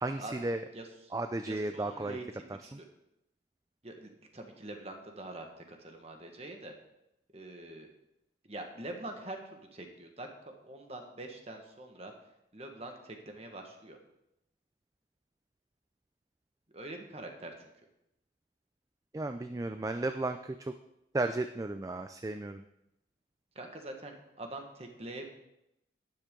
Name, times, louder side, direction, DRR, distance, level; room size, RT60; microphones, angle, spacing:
voice 1, 0.0-0.6 1.1-2.2 19.1-20.7 21.1-22.6, right 2 dB, 20° right, 8 dB, 0.3 m, -34 dB
voice 2, 0.7-1.1 1.4-2.9 3.8-6.7 7.3-7.9 8.4-12.1 12.5-14.0 16.7-17.7 23.5-25.3, right 1 dB, 35° right, 4 dB, 1.5 m, -44 dB
11.5 x 10.0 x 3.8 m, 0.84 s
head